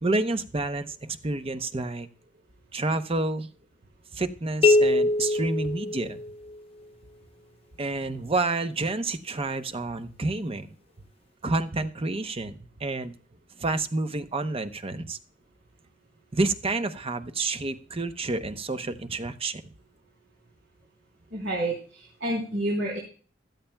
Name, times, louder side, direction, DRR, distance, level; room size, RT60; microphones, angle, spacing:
voice 1, 0.0-2.1 2.7-3.5 4.1-6.2 7.8-10.7 11.4-13.1 13.6-15.2 16.3-19.6, right 2 dB, 30° right, 9 dB, 0.7 m, -29 dB
sound 1, 4.6-6.6, left 2 dB, 30° left, 0.8 m, -23 dB
voice 2, 21.3-21.7 22.2-23.0, right 1 dB, 80° right, -4 dB, 3.8 m, -28 dB
16.0 x 12.5 x 2.3 m, 0.40 s
head